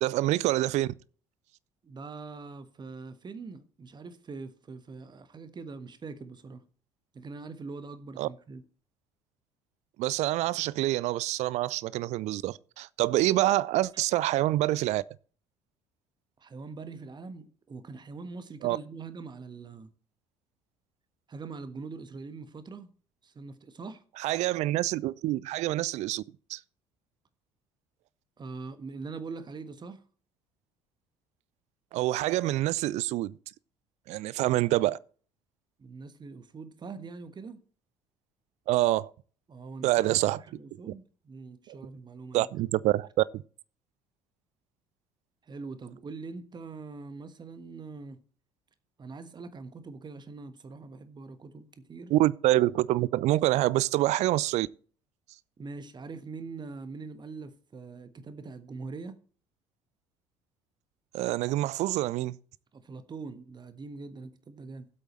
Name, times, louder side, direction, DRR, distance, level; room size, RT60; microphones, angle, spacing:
voice 1, 0.0-0.9 8.2-8.3 10.0-15.0 18.6-18.8 24.2-26.2 26.5-26.6 31.9-33.3 34.1-35.0 38.7-39.1 39.8-40.4 41.7-41.8 42.3-43.2 52.1-54.7 61.1-62.4, right 16 dB, 50° right, 0.5 m, -26 dB
voice 2, 1.8-6.6 7.1-8.6 16.4-19.9 21.3-22.9 23.2-24.0 28.4-30.0 35.8-37.6 39.5-42.5 45.5-48.2 49.0-52.1 55.6-59.1 62.7-64.9, right 4 dB, 30° right, 1.4 m, -43 dB
15.5 x 8.1 x 3.2 m
figure-of-eight pair, 55°, 15 cm